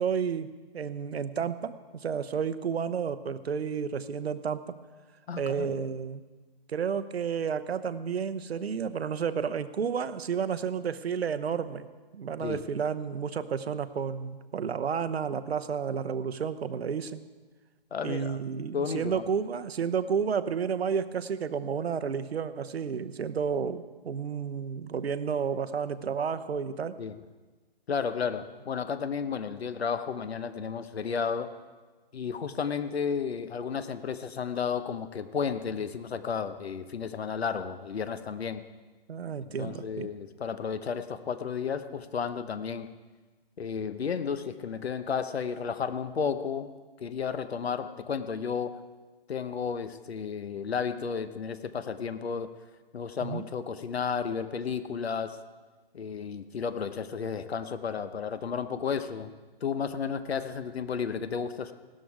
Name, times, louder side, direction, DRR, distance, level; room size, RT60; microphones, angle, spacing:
voice 1, 0.0-4.7 5.4-6.2 6.7-11.9 12.1-17.2 18.0-27.0 39.1-40.1 53.2-53.4, right 6 dB, 80° right, 13 dB, 0.9 m, -31 dB
voice 2, 5.3-5.7 12.4-12.6 17.9-18.4 18.7-19.3 27.0-27.2 27.9-31.5 32.1-38.6 39.6-42.9 43.6-46.7 47.0-48.8 49.3-52.5 52.9-55.4 55.9-59.3 59.6-61.7, left 6 dB, 85° left, 11 dB, 1.0 m, -32 dB
17.0 x 13.0 x 4.8 m, 1.3 s
hypercardioid pair, 180°, 31 cm